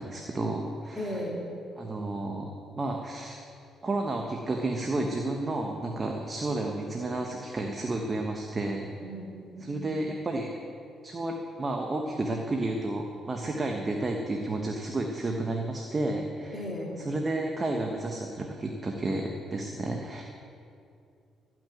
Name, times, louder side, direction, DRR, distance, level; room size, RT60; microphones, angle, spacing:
voice 1, 0.0-1.3 1.8-2.5 2.8-3.4 3.8-8.9 9.6-10.5 11.0-16.6 17.0-20.2, right 2 dB, 30° right, 2 dB, 1.1 m, -31 dB
voice 2, 1.0-1.4 9.0-10.1 16.5-16.9, equal, 15° left, -3 dB, 2.8 m, -36 dB
14.0 x 6.1 x 9.1 m, 2.5 s
cardioid pair, 90°, 0 cm